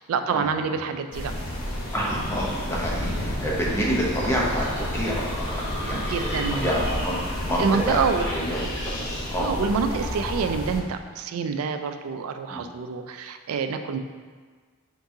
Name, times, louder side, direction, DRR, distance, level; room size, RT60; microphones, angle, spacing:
voice 1, 0.0-1.3 5.9-6.6 7.6-8.3 9.4-14.0, right 5 dB, 80° right, 8 dB, 0.3 m, -27 dB
sound 1, 1.1-10.8, left 1 dB, 75° left, 0.8 m, -30 dB
voice 2, 1.9-9.5 12.5-12.6, equal, 10° left, -4 dB, 0.7 m, -28 dB
4.6 x 3.6 x 2.7 m, 1.5 s
head